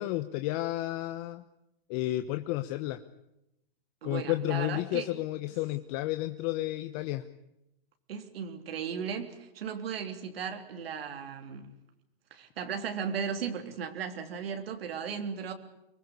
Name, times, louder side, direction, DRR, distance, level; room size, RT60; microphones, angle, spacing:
voice 1, 0.0-1.4 1.9-3.0 4.0-7.2, left 16 dB, 40° left, 9 dB, 1.1 m, -32 dB
voice 2, 4.0-5.1 8.1-11.7 12.3-15.5, right 7 dB, 75° right, 5 dB, 3.6 m, -36 dB
24.0 x 20.0 x 8.4 m, 0.87 s
hypercardioid pair, 135°, 30 cm